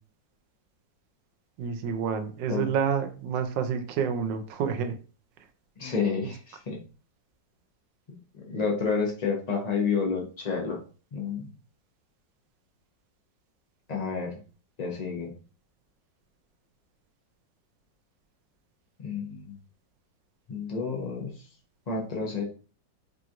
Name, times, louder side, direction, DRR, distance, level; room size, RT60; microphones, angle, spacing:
voice 1, 1.6-4.9, right 7 dB, 75° right, 8 dB, 1.2 m, -28 dB
voice 2, 5.8-6.8 8.1-8.2 8.5-10.8 11.1-11.5 13.9-14.3 14.8-15.3 19.0-19.6 20.5-21.3 21.9-22.4, left 5 dB, 55° left, -1 dB, 0.4 m, -30 dB
4.6 x 2.9 x 2.5 m, 0.37 s
omnidirectional pair, 2.0 m